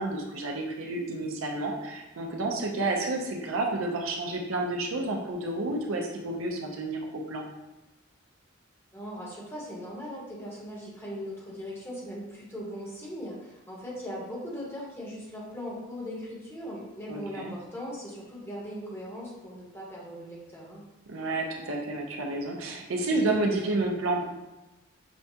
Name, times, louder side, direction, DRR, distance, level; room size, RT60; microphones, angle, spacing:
voice 1, 0.0-7.0 7.3-7.4 17.1-17.5 21.1-24.2, right 2 dB, 70° right, 1 dB, 0.6 m, -30 dB
voice 2, 8.9-20.8, equal, 10° left, -5 dB, 1.0 m, -39 dB
6.0 x 2.3 x 2.7 m, 1.0 s
head